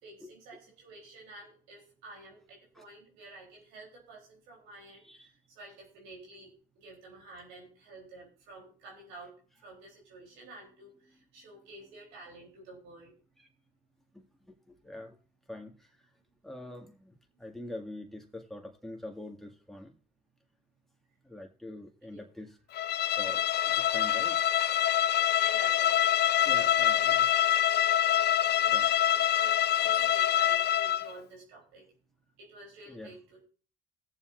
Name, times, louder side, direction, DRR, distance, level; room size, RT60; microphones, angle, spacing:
voice 1, 0.0-13.1 22.0-22.2 25.4-26.0 26.3-27.3 28.4-31.9 32.4-33.4, right 2 dB, 85° right, -1 dB, 3.7 m, -51 dB
voice 2, 14.1-15.2 15.5-15.9 16.4-20.0 21.2-22.6 23.2-24.4 26.5-27.3 28.3-28.4 28.7-28.9 32.9-33.1, left 1 dB, ahead, 2 dB, 2.0 m, -45 dB
Bowed string instrument, 22.7-31.1, left 11 dB, 55° left, 0.6 m, -25 dB
19.5 x 7.2 x 2.6 m, 0.40 s
supercardioid pair, 75°, 20 cm